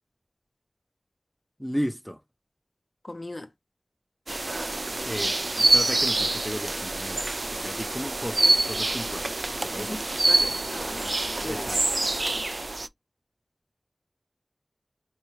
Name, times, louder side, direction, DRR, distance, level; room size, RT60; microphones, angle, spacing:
voice 1, 1.6-2.2 5.1-9.3 9.6-10.0 11.5-11.8, equal, ahead, 0.5 m, -34 dB
voice 2, 3.0-3.5 9.8-11.7, left 2 dB, 50° left, 0.6 m, -39 dB
sound 1, 4.3-12.9, right 2 dB, 60° right, 0.3 m, -26 dB
4.5 x 2.2 x 3.0 m
wide cardioid pair, 45°, 0 cm